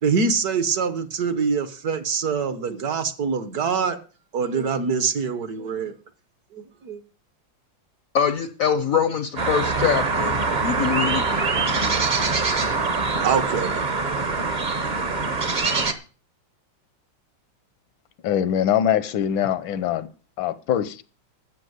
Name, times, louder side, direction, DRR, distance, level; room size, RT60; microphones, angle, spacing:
voice 1, 0.0-4.0 4.3-5.9 6.5-7.0 13.1-13.8, right 5 dB, 60° right, 1.3 m, -24 dB
voice 2, 8.1-11.2, left 7 dB, 65° left, 0.9 m, -23 dB
sound 1, 9.4-15.9, right 3 dB, 35° right, 0.8 m, -23 dB
voice 3, 18.2-20.1 20.4-21.0, left 10 dB, 80° left, 1.6 m, -23 dB
13.5 x 5.6 x 7.9 m
omnidirectional pair, 2.1 m